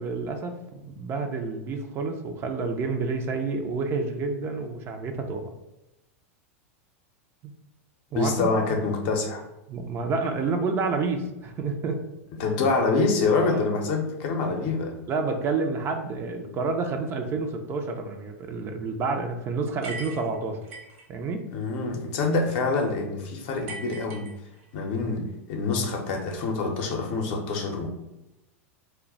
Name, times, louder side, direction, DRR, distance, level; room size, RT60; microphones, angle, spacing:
voice 1, 0.0-5.5 7.4-7.5 8.1-8.5 9.7-12.0 13.4-13.6 15.1-20.6 21.1-21.5, right 4 dB, 35° right, 5 dB, 0.4 m, -29 dB
voice 2, 8.1-9.4 12.4-15.0 21.5-24.3 24.7-27.9, left 3 dB, 55° left, 3 dB, 0.6 m, -26 dB
sound 1, 19.8-21.1 23.7-24.8, right 3 dB, 65° right, 1.0 m, -40 dB
2.2 x 2.1 x 3.8 m, 0.94 s
hypercardioid pair, 95°, 7 cm